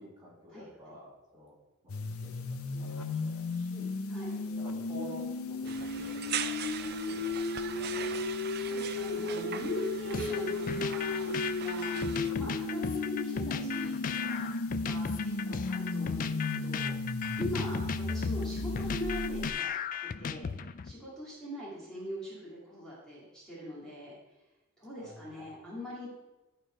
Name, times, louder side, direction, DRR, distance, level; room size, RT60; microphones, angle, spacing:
voice 1, 0.0-1.6 1.8-3.9 4.6-7.4 7.6-8.3 25.0-25.5, left 2 dB, 20° right, -6 dB, 2.5 m, -50 dB
voice 2, 0.5-1.0 4.1-4.4 8.3-11.2 11.6-12.0 12.4-14.5 14.8-16.9 17.4-19.7 20.0-20.5 20.8-24.1 24.8-26.1, equal, 5° left, -8 dB, 2.1 m, -41 dB
sound 1, 1.9-19.5, left 3 dB, 75° left, 0.6 m, -34 dB
sound 2, 5.6-12.3, right 9 dB, 45° right, 0.4 m, -41 dB
sound 3, 10.1-20.9, left 6 dB, 35° left, 0.3 m, -36 dB
11.5 x 4.5 x 4.9 m, 1.0 s
head